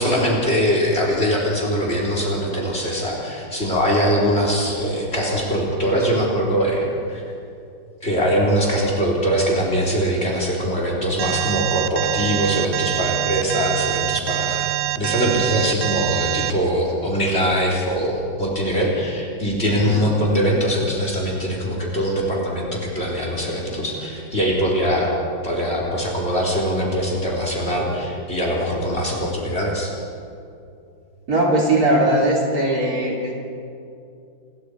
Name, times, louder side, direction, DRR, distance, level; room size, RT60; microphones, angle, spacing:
voice 1, 0.0-7.2 8.0-14.7 15.0-25.2 25.4-29.9, equal, 30° left, -2 dB, 4.3 m, -22 dB
Alarm, 11.2-16.5, right 16 dB, 85° right, 0.7 m, -24 dB
voice 2, 19.6-20.0 31.3-33.3, right 1 dB, 50° right, -3 dB, 4.5 m, -19 dB
27.0 x 22.0 x 5.1 m, 2.5 s
omnidirectional pair, 2.1 m